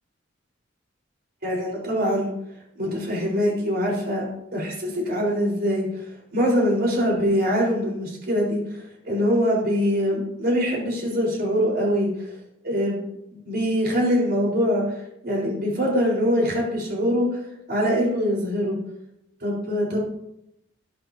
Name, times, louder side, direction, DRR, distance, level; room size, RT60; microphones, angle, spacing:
voice 1, 1.4-2.3 2.8-5.9 6.3-8.6 9.0-12.1 12.6-13.0 13.3-17.4 17.7-18.8 19.4-20.0, equal, 55° right, -3 dB, 4.4 m, -23 dB
12.0 x 11.0 x 2.8 m, 0.81 s
head